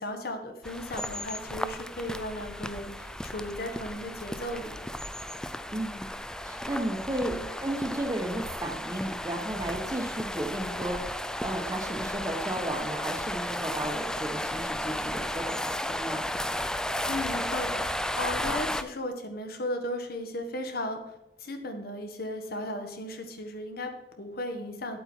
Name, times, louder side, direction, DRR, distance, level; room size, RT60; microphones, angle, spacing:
voice 1, 0.0-4.9 7.1-7.4 17.1-21.0 21.4-25.0, left 1 dB, 55° left, 6 dB, 1.3 m, -36 dB
sound 1, 0.6-18.8, left 1 dB, 5° left, 0.3 m, -34 dB
voice 2, 5.7-7.3 7.6-16.2, right 1 dB, 20° right, 3 dB, 1.1 m, -34 dB
9.9 x 8.2 x 4.3 m, 0.89 s
head